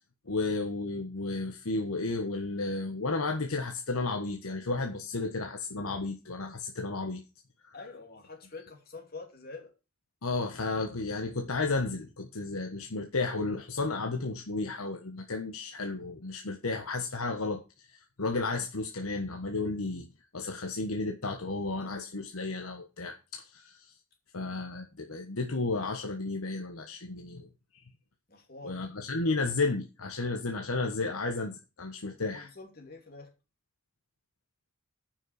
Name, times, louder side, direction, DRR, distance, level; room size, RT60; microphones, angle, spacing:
voice 1, 0.3-7.2 10.2-17.6 18.2-20.1 20.3-23.9 24.3-27.5 28.6-32.5, left 3 dB, 85° left, 1.3 m, -33 dB
voice 2, 7.7-9.7 28.3-28.9 32.0-33.3, left 3 dB, 45° left, 2.8 m, -46 dB
9.1 x 6.2 x 6.5 m
head